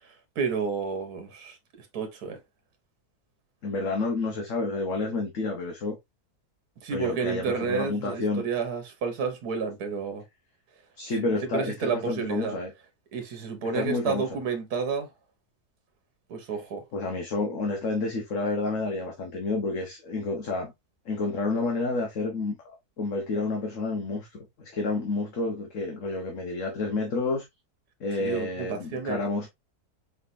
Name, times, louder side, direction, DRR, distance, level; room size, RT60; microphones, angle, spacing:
voice 1, 0.0-2.4 6.8-10.2 11.1-11.3 11.5-12.6 13.1-15.1 16.3-16.8 28.2-29.2, right 5 dB, 85° right, 1.5 m, -31 dB
voice 2, 3.6-6.0 6.9-8.5 11.0-12.7 13.6-14.3 16.9-20.7 21.0-22.6 23.0-27.4 28.0-29.5, left 3 dB, 60° left, 1.3 m, -29 dB
4.9 x 3.3 x 2.5 m
omnidirectional pair, 1.6 m